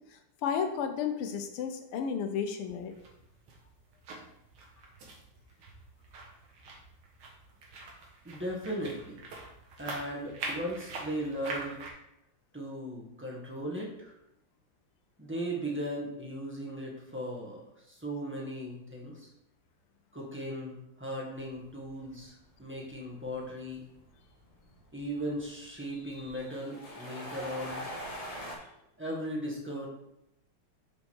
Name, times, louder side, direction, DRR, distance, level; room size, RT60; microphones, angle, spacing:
voice 1, 0.1-2.9, left 7 dB, 85° left, 6 dB, 1.6 m, -33 dB
sound 1, 2.6-11.9, right 3 dB, 75° right, 2.1 m, -44 dB
voice 2, 8.2-9.2 9.8-11.8 12.5-14.2 15.2-19.3 20.1-23.8 24.9-27.8 29.0-29.9, equal, 5° right, -3 dB, 1.1 m, -37 dB
sound 2, 21.3-28.6, equal, 20° left, 1.4 m, -44 dB
5.8 x 5.3 x 4.6 m, 0.83 s
omnidirectional pair, 2.4 m